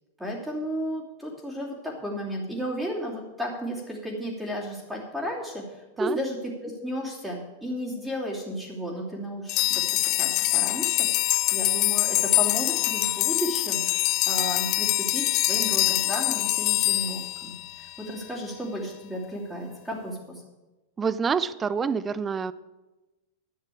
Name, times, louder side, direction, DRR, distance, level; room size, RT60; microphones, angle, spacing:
voice 1, 0.2-20.4, equal, 5° right, -8 dB, 3.1 m, -33 dB
sound 1, 9.5-18.0, left 19 dB, 45° left, 0.3 m, -24 dB
voice 2, 21.0-22.5, right 6 dB, 20° right, 17 dB, 0.6 m, -27 dB
11.5 x 6.5 x 8.6 m, 1.1 s
hypercardioid pair, 100°, 0 cm